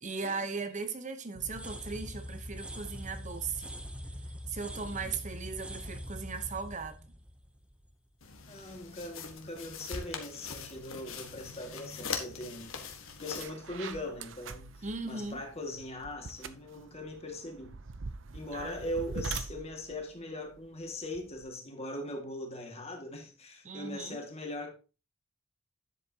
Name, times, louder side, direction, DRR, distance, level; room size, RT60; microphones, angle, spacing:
voice 1, 0.0-3.7 4.5-7.2 14.8-15.4 18.5-18.8 23.6-24.2, right 4 dB, 35° right, 1.0 m, -38 dB
sound 1, 1.3-8.2, equal, 5° right, 0.8 m, -43 dB
voice 2, 4.7-5.2 8.5-17.8 18.3-24.7, left 1 dB, 30° left, 2.1 m, -40 dB
sound 2, 8.2-13.5, left 5 dB, 80° left, 1.6 m, -42 dB
sound 3, 12.7-12.8 13.2-21.5, right 4 dB, 65° right, 0.7 m, -44 dB
10.0 x 7.9 x 2.9 m
head